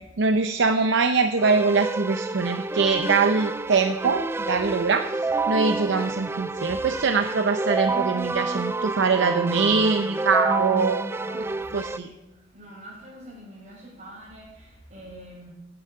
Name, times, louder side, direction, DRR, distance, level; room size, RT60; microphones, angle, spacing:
voice 1, 0.2-11.1 11.3-11.5 11.7-12.1, right 4 dB, 65° right, 8 dB, 0.6 m, -23 dB
Keyboard (musical), 1.4-12.0, right 3 dB, 10° right, 0.3 m, -28 dB
voice 2, 11.1-12.2 12.5-15.5, right 1 dB, 40° right, -8 dB, 4.4 m, -45 dB
10.5 x 9.1 x 8.5 m, 0.99 s
head